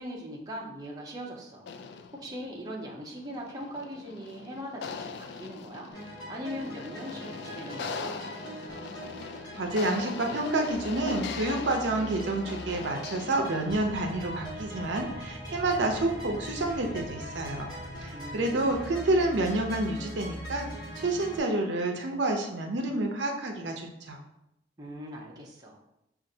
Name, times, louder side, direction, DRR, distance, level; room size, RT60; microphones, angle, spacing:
voice 1, 0.0-1.7 2.1-5.9 6.3-8.2 18.1-19.0 24.8-25.8, equal, 20° right, -2 dB, 0.6 m, -40 dB
sound 1, 1.6-13.9, left 5 dB, 65° left, 0.3 m, -41 dB
sound 2, 5.9-21.4, right 1 dB, 20° left, 1.1 m, -42 dB
voice 2, 9.6-17.7 18.0-20.7 21.0-24.2, right 2 dB, 75° right, 2 dB, 0.6 m, -29 dB
sound 3, 13.6-20.4, equal, 45° left, 1.5 m, -45 dB
6.3 x 2.5 x 2.7 m, 0.85 s
head